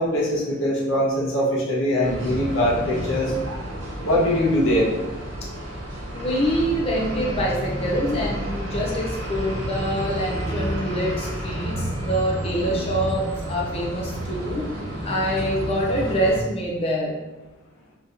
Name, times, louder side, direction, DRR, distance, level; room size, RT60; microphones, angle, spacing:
voice 1, 0.0-3.3 4.0-4.9, left 1 dB, 80° left, -5 dB, 0.8 m, -22 dB
sound 1, 2.0-16.4, equal, 85° right, 1.1 m, -30 dB
voice 2, 6.1-14.6 15.0-17.2, equal, 30° left, -4 dB, 0.4 m, -25 dB
3.8 x 2.7 x 2.5 m, 1.1 s
head